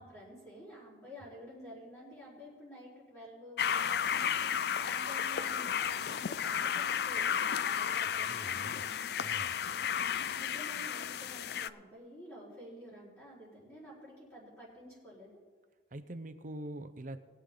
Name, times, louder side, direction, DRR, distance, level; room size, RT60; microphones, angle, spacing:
voice 1, 0.0-4.5 4.8-8.6 10.3-15.3, equal, 15° left, -9 dB, 4.6 m, -50 dB
sound 1, 3.6-11.7, left 8 dB, 60° left, 0.4 m, -33 dB
voice 2, 8.2-8.9 9.2-9.6 15.9-17.2, right 1 dB, 45° right, 10 dB, 0.8 m, -44 dB
21.0 x 8.2 x 3.9 m, 1.5 s
head